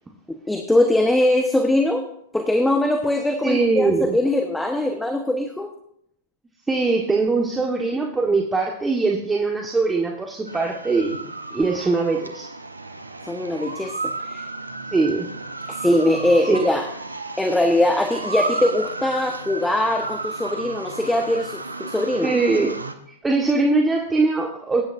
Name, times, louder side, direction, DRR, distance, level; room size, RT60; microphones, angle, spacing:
voice 1, 0.5-2.1 2.3-5.7 13.2-14.5 15.7-16.9 17.4-22.4, left 1 dB, 5° left, 5 dB, 1.1 m, -21 dB
voice 2, 3.4-4.2 6.7-11.2 11.5-12.5 14.9-15.3 16.5-16.6 22.2-22.8 23.2-24.8, right 3 dB, 10° right, 1 dB, 1.4 m, -21 dB
sound 1, 10.5-22.9, right 3 dB, 85° right, 1.1 m, -33 dB
21.5 x 10.5 x 2.6 m, 0.72 s
figure-of-eight pair, 105°, 0 cm